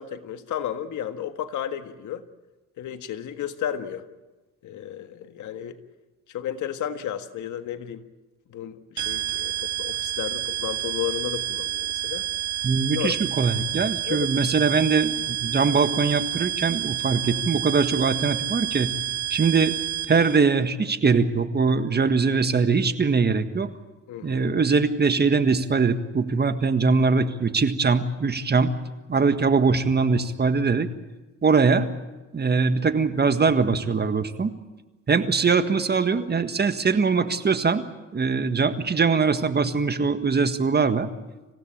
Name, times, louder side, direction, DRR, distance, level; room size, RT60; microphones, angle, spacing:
voice 1, 0.0-2.2 2.8-4.0 4.6-5.8 6.3-8.0 8.5-12.2 12.9-13.2 14.1-14.3 24.1-24.5, left 10 dB, 75° left, 8 dB, 1.7 m, -33 dB
sound 1, 9.0-20.4, right 12 dB, 70° right, 2.1 m, -29 dB
voice 2, 12.6-18.9 19.3-19.8 20.1-23.7 24.2-28.7 29.1-30.9 31.4-31.9 32.3-34.5 35.1-37.8 38.1-41.1, right 4 dB, 35° right, 9 dB, 1.7 m, -22 dB
26.5 x 16.0 x 8.8 m, 1.1 s
cardioid pair, 90°, 30 cm